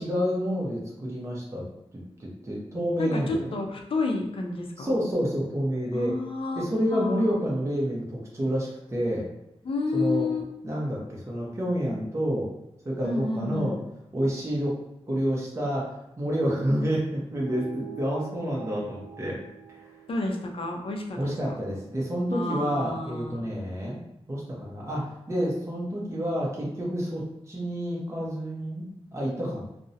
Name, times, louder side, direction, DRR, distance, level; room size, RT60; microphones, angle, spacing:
voice 1, 0.0-1.6 2.2-3.6 4.8-6.2 6.5-9.3 9.9-10.3 10.6-12.5 12.8-13.8 14.1-14.8 15.1-19.4 19.7-19.9 21.2-24.0 24.3-29.6, equal, 25° right, -4 dB, 0.6 m, -29 dB
voice 2, 3.0-4.9 5.9-6.6 6.9-7.4 9.6-10.4 13.0-13.8 20.1-21.3 22.3-23.4, left 3 dB, 60° left, 2 dB, 0.5 m, -30 dB
sound 1, 17.3-22.1, right 9 dB, 80° right, 0.5 m, -45 dB
2.4 x 2.0 x 2.6 m, 0.87 s
wide cardioid pair, 105°, 11 cm